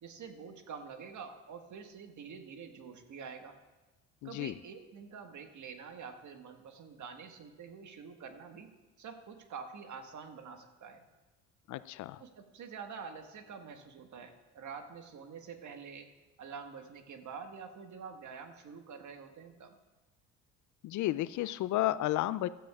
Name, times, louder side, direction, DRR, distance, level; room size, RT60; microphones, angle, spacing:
voice 1, 0.0-3.6 4.2-8.7 9.0-11.0 12.2-16.1 16.4-19.8, right 6 dB, 50° right, 5 dB, 1.6 m, -47 dB
voice 2, 4.2-4.6 11.7-12.2 20.8-22.5, left 15 dB, 50° left, 16 dB, 0.5 m, -32 dB
15.5 x 13.0 x 2.4 m, 1.1 s
hypercardioid pair, 60°, 38 cm